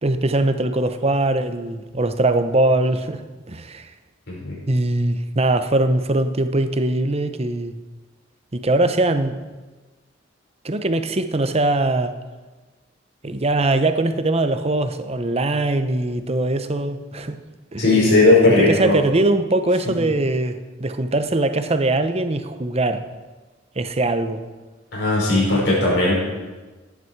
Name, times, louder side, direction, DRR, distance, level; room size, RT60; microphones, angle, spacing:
voice 1, 0.0-3.2 3.5-3.9 4.7-7.8 8.5-9.4 10.6-12.1 13.2-17.4 17.7-17.8 18.6-23.0 23.8-24.4, right 2 dB, 30° right, 9 dB, 0.9 m, -21 dB
voice 2, 17.8-19.0 24.9-26.1, left 2 dB, 65° left, -5 dB, 5.4 m, -17 dB
16.0 x 11.0 x 4.7 m, 1.3 s
head